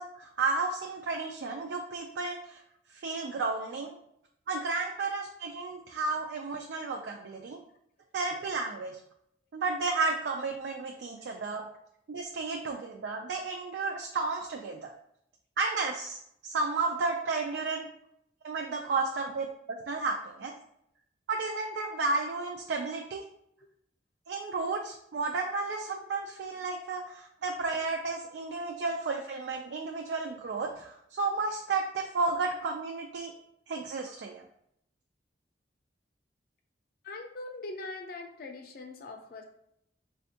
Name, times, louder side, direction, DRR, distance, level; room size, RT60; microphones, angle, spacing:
voice 1, 0.0-2.6 2.9-4.0 4.5-7.6 8.1-9.0 9.5-11.7 12.1-14.9 15.6-17.9 18.4-20.5 21.3-23.2 24.3-33.3 33.7-34.4, right 3 dB, 70° right, 1 dB, 0.3 m, -32 dB
voice 2, 37.0-39.4, left 2 dB, 55° left, 4 dB, 0.5 m, -41 dB
4.2 x 2.3 x 2.7 m, 0.73 s
head